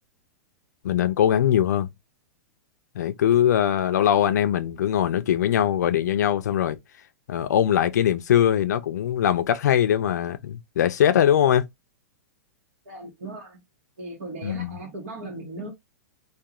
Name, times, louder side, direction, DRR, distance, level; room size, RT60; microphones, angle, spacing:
voice 1, 0.8-1.9 3.0-6.8 7.3-11.7 14.4-14.7, left 10 dB, 80° left, 0.4 m, -21 dB
voice 2, 12.8-13.6 14.0-15.7, right 2 dB, 50° right, 1.0 m, -37 dB
2.4 x 2.3 x 2.8 m
supercardioid pair, 175°, 9 cm